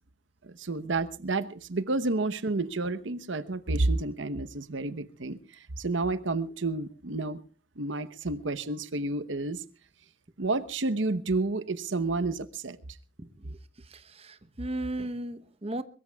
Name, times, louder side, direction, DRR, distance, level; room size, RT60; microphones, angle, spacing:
voice 1, 0.4-5.4 5.8-7.4 7.8-9.6 10.4-12.8, right 2 dB, 75° right, 1.0 m, -30 dB
voice 2, 14.2-15.8, right 1 dB, 30° right, 0.9 m, -35 dB
22.5 x 22.0 x 2.3 m
head